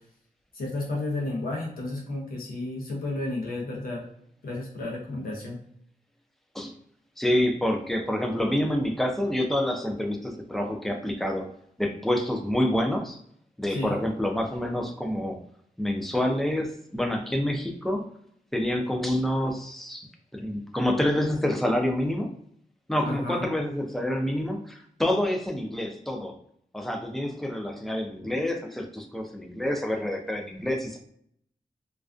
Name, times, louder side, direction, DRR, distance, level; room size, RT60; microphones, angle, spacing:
voice 1, 0.5-4.0 4.4-5.6 13.7-14.0 23.0-23.5, left 2 dB, 85° left, -2 dB, 0.6 m, -32 dB
voice 2, 7.2-11.5 11.8-13.2 13.6-15.4 15.8-18.1 18.5-20.1 20.3-22.3 22.9-26.4 26.7-31.0, left 1 dB, ahead, 3 dB, 0.4 m, -27 dB
2.4 x 2.2 x 2.4 m, 0.68 s
wide cardioid pair, 110°, 15 cm